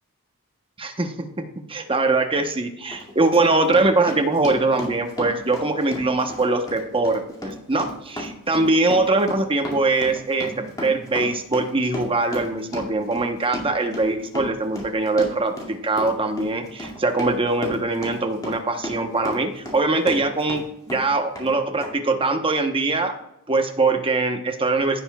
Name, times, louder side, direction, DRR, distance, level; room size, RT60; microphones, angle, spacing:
voice 1, 0.8-23.1 23.5-25.0, right 3 dB, 25° right, 5 dB, 0.9 m, -22 dB
Run, 2.3-2.4 2.9-20.6 20.9-21.5 21.8-21.9, left 1 dB, 20° left, 2.2 m, -34 dB
16.0 x 6.8 x 2.3 m, 0.81 s
head